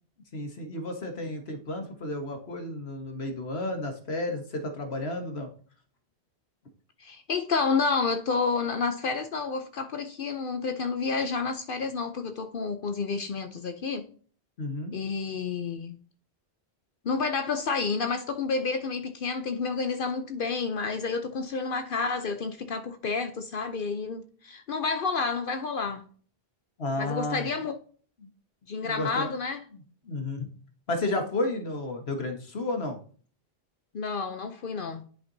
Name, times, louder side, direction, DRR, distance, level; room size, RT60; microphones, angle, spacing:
voice 1, 0.3-5.5 14.6-14.9 26.8-27.5 28.2-28.3 28.8-29.3 29.7-30.5 30.9-33.0, left 2 dB, 75° left, 1.7 m, -32 dB
voice 2, 7.0-14.1 14.9-16.0 17.0-26.0 27.0-27.8 28.7-29.6 33.9-35.0, left 4 dB, 60° left, 0.8 m, -30 dB
10.5 x 5.2 x 2.7 m
omnidirectional pair, 1.1 m